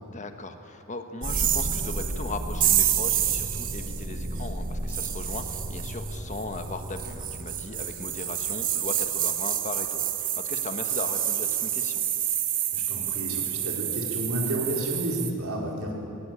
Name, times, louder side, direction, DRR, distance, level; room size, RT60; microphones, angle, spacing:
voice 1, 0.1-12.0, left 2 dB, 35° left, 7 dB, 1.3 m, -38 dB
sound 1, 1.2-15.3, right 9 dB, 40° right, 1.2 m, -28 dB
voice 2, 12.7-15.9, right 1 dB, 85° right, -1 dB, 4.5 m, -31 dB
19.5 x 18.5 x 8.9 m, 2.8 s
head